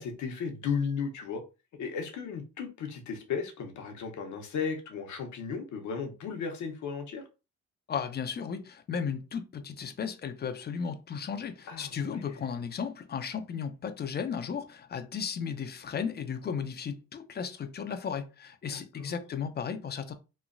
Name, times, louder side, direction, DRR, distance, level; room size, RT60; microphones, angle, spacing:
voice 1, 0.0-1.4 1.8-7.2 11.7-12.4 18.7-19.1, left 6 dB, 70° left, 0.8 m, -35 dB
voice 2, 7.9-20.1, left 6 dB, 35° left, 0.4 m, -35 dB
3.0 x 2.2 x 2.5 m
cardioid pair, 90°, 30 cm